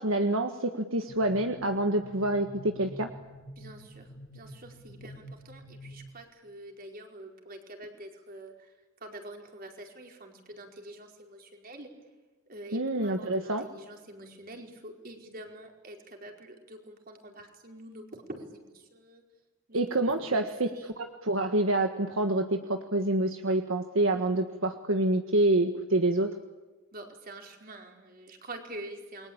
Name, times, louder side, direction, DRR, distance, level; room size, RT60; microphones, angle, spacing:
voice 1, 0.0-3.1 12.7-13.6 19.7-20.7 21.0-26.3, right 1 dB, 70° right, 6 dB, 1.6 m, -27 dB
sound 1, 1.1-6.1, equal, 80° left, 6.5 m, -48 dB
voice 2, 3.6-11.9 12.5-19.2 19.7-20.9 26.9-29.3, right 1 dB, 45° right, 2 dB, 4.8 m, -46 dB
29.0 x 23.0 x 8.9 m, 1.2 s
head